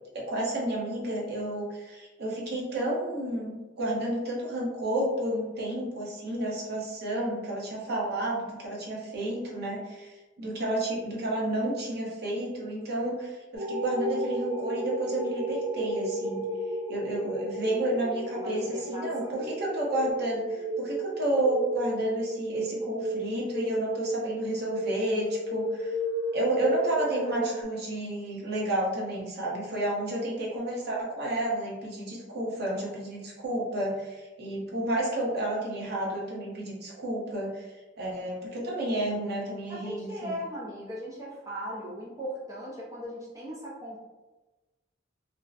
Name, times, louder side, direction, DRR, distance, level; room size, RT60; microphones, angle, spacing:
voice 1, 0.1-16.4 16.9-25.9 26.3-37.7 38.0-40.4, right 1 dB, 60° right, -4 dB, 0.7 m, -31 dB
sound 1, 13.5-27.6, equal, 80° right, 1.0 m, -33 dB
voice 2, 18.3-19.5 39.7-44.0, equal, 20° right, -6 dB, 0.5 m, -38 dB
2.5 x 2.1 x 2.4 m, 1.1 s
head